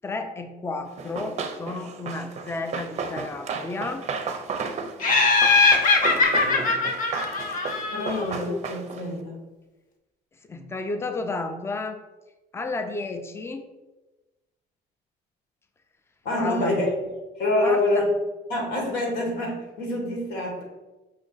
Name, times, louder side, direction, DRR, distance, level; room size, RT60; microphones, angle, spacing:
voice 1, 0.0-4.0 10.5-12.0 12.5-13.6 16.4-16.7 17.6-18.0, left 3 dB, 15° left, 6 dB, 0.4 m, -32 dB
Run, 1.0-9.1, right 5 dB, 40° right, 0.5 m, -34 dB
Laughter, 5.0-8.3, left 3 dB, 50° left, 0.7 m, -21 dB
voice 2, 6.4-6.8 7.9-9.4 16.2-16.9 17.4-18.1 18.5-20.6, left 1 dB, 80° left, -1 dB, 1.6 m, -26 dB
5.3 x 2.5 x 3.8 m, 1.1 s
cardioid pair, 110°, 17 cm